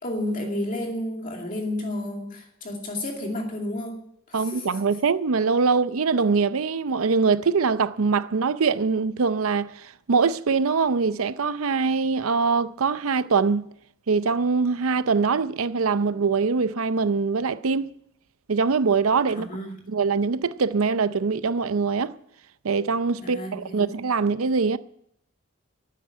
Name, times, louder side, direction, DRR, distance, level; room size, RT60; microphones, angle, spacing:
voice 1, 0.0-4.7 19.4-19.8 23.2-23.8, left 1 dB, 40° left, 2.4 m, -31 dB
voice 2, 4.3-13.7 14.1-17.9 18.5-19.5 19.9-22.1 22.6-24.8, right 5 dB, 90° right, 0.6 m, -23 dB
12.0 x 9.4 x 9.7 m
head